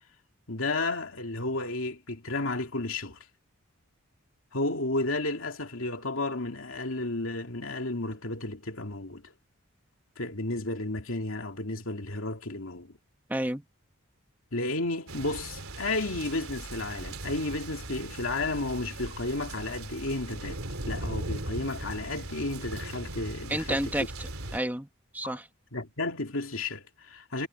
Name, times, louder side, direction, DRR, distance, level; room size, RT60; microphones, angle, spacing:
voice 1, 0.5-3.2 4.5-9.3 10.2-12.9 14.5-23.9 25.2-25.4 25.7-27.5, left 2 dB, 65° left, 2.7 m, -32 dB
voice 2, 13.3-13.6 23.5-24.9 25.1-25.5, right 1 dB, 10° right, 1.7 m, -31 dB
sound 1, 15.1-24.6, right 2 dB, 70° right, 3.5 m, -39 dB
head